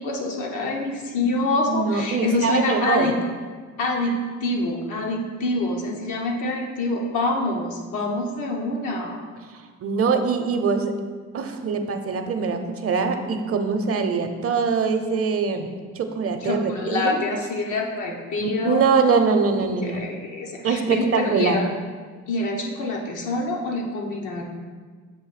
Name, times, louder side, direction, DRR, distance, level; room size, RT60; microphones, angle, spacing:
voice 1, 0.0-3.1 3.8-9.2 16.4-18.8 19.8-21.7 22.3-24.4, left 2 dB, 85° left, -1 dB, 1.0 m, -26 dB
voice 2, 1.7-3.1 9.8-10.9 11.3-17.2 18.4-20.1 20.6-21.6, right 5 dB, 50° right, 7 dB, 0.6 m, -23 dB
7.0 x 2.6 x 5.7 m, 1.5 s
cardioid pair, 90°, 30 cm